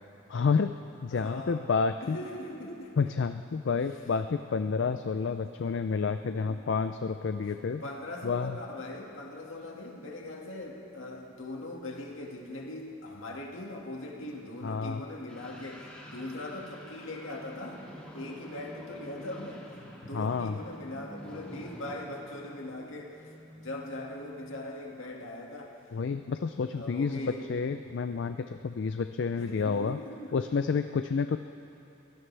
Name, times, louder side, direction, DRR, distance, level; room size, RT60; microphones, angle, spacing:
voice 1, 0.3-0.7 1.0-2.2 3.0-7.8 8.2-8.6 14.6-15.0 20.1-20.6 25.9-30.0 30.3-31.4, left 5 dB, 60° left, 8 dB, 0.4 m, -29 dB
voice 2, 1.1-1.6 2.0-2.9 5.4-5.6 6.2-6.6 7.5-17.8 18.1-19.7 20.1-23.2 23.6-25.8 26.7-27.5 29.3-30.5, left 1 dB, 80° left, 0 dB, 1.9 m, -40 dB
sound 1, 15.3-24.6, equal, 5° left, 2.0 m, -48 dB
23.5 x 17.0 x 3.3 m, 2.8 s
head